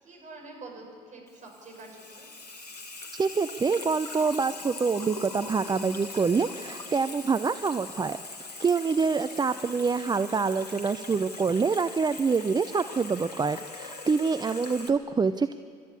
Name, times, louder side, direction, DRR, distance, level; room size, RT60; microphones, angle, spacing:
voice 1, 0.0-2.3 14.7-14.9, right 2 dB, 40° right, 0 dB, 7.2 m, -46 dB
Water tap faucet / Sink (filling or washing), 1.3-14.9, left 3 dB, 85° left, 1.4 m, -41 dB
voice 2, 3.1-8.2 8.6-15.5, right 5 dB, 20° right, 11 dB, 0.7 m, -26 dB
29.5 x 13.0 x 8.8 m, 2.3 s
figure-of-eight pair, 55°, 20 cm